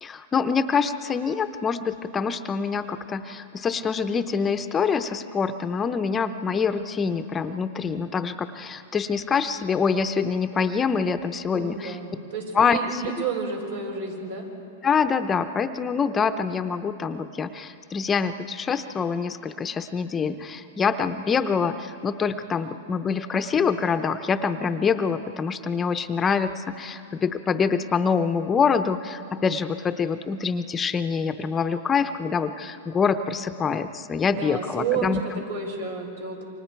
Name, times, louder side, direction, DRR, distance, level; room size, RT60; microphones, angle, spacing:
voice 1, 0.0-12.0 12.5-13.0 14.8-35.4, left 5 dB, 20° left, 10 dB, 0.7 m, -25 dB
voice 2, 11.6-14.5 34.3-35.2 35.5-36.4, right 5 dB, 85° right, 0 dB, 5.7 m, -31 dB
28.5 x 25.0 x 4.6 m, 2.6 s
hypercardioid pair, 135°, 0 cm